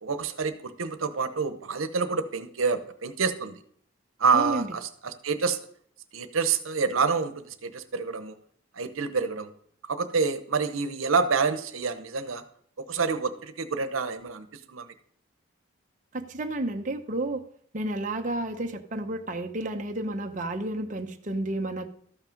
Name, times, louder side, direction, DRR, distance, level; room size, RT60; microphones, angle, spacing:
voice 1, 0.0-3.6 4.2-5.6 6.1-8.4 8.8-9.5 9.9-12.4 12.8-14.9, right 5 dB, 90° right, 10 dB, 0.9 m, -27 dB
voice 2, 4.3-4.7 16.1-17.4 17.7-21.9, right 2 dB, 40° right, 4 dB, 0.8 m, -31 dB
13.5 x 6.0 x 5.2 m, 0.63 s
head